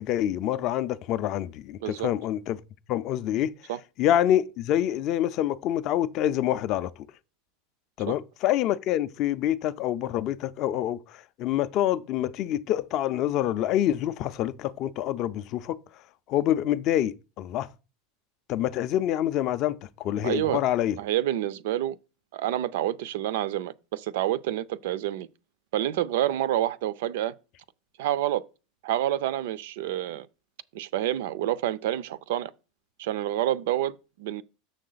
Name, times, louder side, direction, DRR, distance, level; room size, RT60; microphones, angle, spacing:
voice 1, 0.0-2.6 2.9-3.5 4.0-6.9 8.0-15.8 16.3-17.7 18.5-21.0, left 12 dB, 30° left, 0.4 m, -26 dB
voice 2, 20.2-20.6 21.0-22.0 22.3-25.3 25.7-27.3 28.0-28.4 28.8-30.3 30.7-32.5 33.0-34.4, right 13 dB, 65° right, 0.4 m, -28 dB
6.8 x 6.4 x 3.9 m
supercardioid pair, 180°, 0 cm